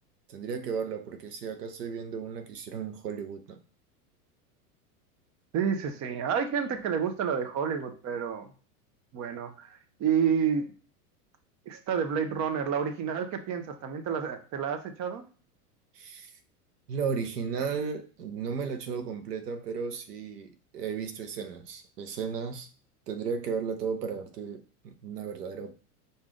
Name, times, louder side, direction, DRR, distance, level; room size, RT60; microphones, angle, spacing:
voice 1, 0.3-3.6 15.9-16.3 16.9-22.7 23.1-25.7, right 6 dB, 85° right, 0.9 m, -34 dB
voice 2, 5.5-8.5 9.1-10.7 11.7-15.2, right 7 dB, 35° right, 0.9 m, -29 dB
4.9 x 2.7 x 3.7 m
hypercardioid pair, 105°, 46 cm